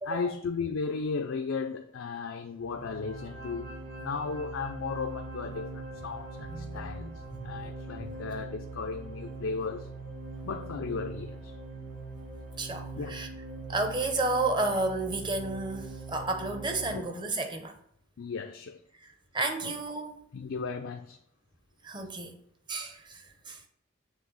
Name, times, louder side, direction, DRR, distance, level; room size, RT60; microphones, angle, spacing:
voice 1, 0.0-3.7 4.0-9.9 10.4-11.6 13.0-13.1 16.9-17.1 18.2-18.8 19.6-19.7 20.3-21.2, left 5 dB, 70° left, 0.4 m, -35 dB
sound 1, 2.6-16.9, right 3 dB, 60° right, 2.7 m, -42 dB
voice 2, 6.5-7.5 8.0-8.1 12.6-13.3 13.7-17.7 19.3-20.2 21.8-22.3 22.7-23.2 23.5-23.6, right 2 dB, 20° right, 0.7 m, -32 dB
7.3 x 3.3 x 6.3 m
head